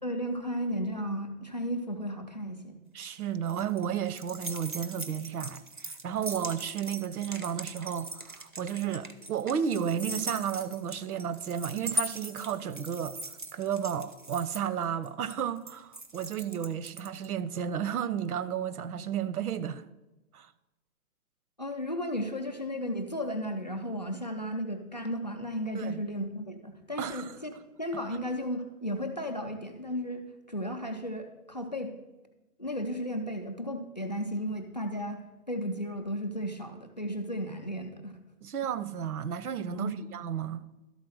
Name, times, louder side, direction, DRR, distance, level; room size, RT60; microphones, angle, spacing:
voice 1, 0.0-2.8 21.6-27.5 27.8-31.9 32.6-35.2 35.5-38.1 39.8-40.0, equal, 30° left, 0.4 m, -34 dB
voice 2, 2.9-13.2 13.5-19.8 20.3-20.5 25.7-26.0 27.0-27.3 38.4-40.6, right 8 dB, 85° right, 0.7 m, -33 dB
sound 1, 3.0-17.3, right 1 dB, 40° right, 0.4 m, -40 dB
12.0 x 4.1 x 6.2 m
hypercardioid pair, 175°, 43 cm